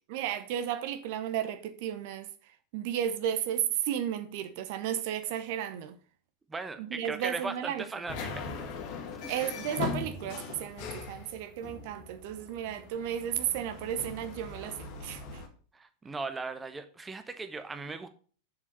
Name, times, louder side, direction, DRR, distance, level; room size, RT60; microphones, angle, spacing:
voice 1, 0.1-2.3 2.7-6.0 6.8-7.8 9.3-15.4, right 10 dB, 50° right, 0.9 m, -33 dB
voice 2, 6.5-8.5 9.2-9.5 15.7-18.1, right 3 dB, 15° right, 0.8 m, -38 dB
sound 1, 8.1-15.5, left 5 dB, 40° left, 1.6 m, -40 dB
7.4 x 6.7 x 5.4 m
figure-of-eight pair, 90°, 0 cm